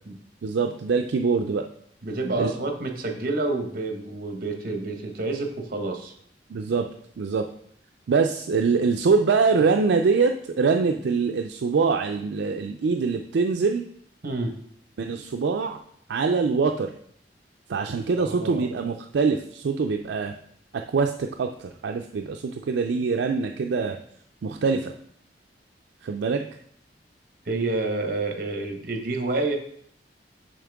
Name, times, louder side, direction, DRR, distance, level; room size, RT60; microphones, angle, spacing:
voice 1, 0.4-1.6 2.4-2.5 6.5-6.9 7.2-7.5 8.1-13.8 15.0-15.8 16.1-16.9 17.7-20.3 20.7-24.0 24.4-24.9 26.0-26.4, right 4 dB, 70° right, 4 dB, 0.4 m, -24 dB
voice 2, 2.0-6.1 14.2-14.6 18.2-18.7 27.5-29.6, right 2 dB, 55° right, 5 dB, 1.0 m, -28 dB
7.3 x 5.2 x 3.5 m, 0.65 s
head